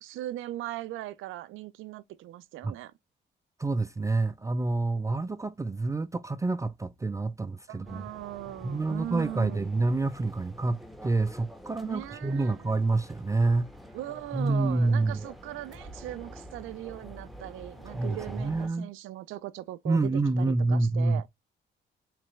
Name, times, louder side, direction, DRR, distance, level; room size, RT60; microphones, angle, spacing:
voice 1, 0.0-2.9 7.7-9.7 11.8-12.7 13.9-21.3, right 14 dB, 85° right, 0.5 m, -39 dB
voice 2, 3.6-8.0 8.6-13.7 14.3-15.2 17.9-18.9 19.9-21.3, right 3 dB, 15° right, 0.3 m, -27 dB
sound 1, 7.8-18.7, equal, ahead, 0.7 m, -47 dB
3.8 x 3.3 x 3.1 m
cardioid pair, 90°, 20 cm